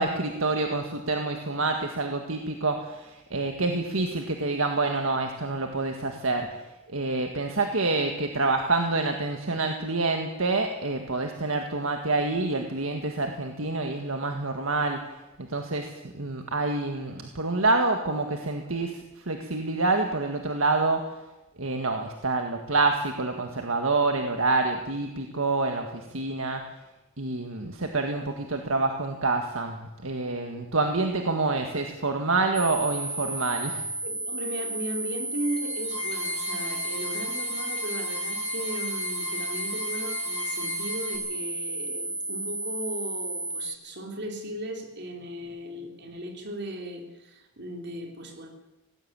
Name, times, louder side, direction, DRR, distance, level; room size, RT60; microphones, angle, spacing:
voice 1, 0.0-6.5 6.9-15.0 15.4-21.0 21.6-26.6 27.2-33.9, right 3 dB, 70° right, 4 dB, 1.8 m, -27 dB
sound 1, 32.5-43.8, right 2 dB, 5° left, 1.1 m, -33 dB
voice 2, 34.0-48.5, right 1 dB, 55° right, 2 dB, 3.8 m, -36 dB
sound 2, 35.4-41.2, left 3 dB, 30° left, 7.4 m, -36 dB
18.5 x 16.0 x 8.9 m, 1.0 s
head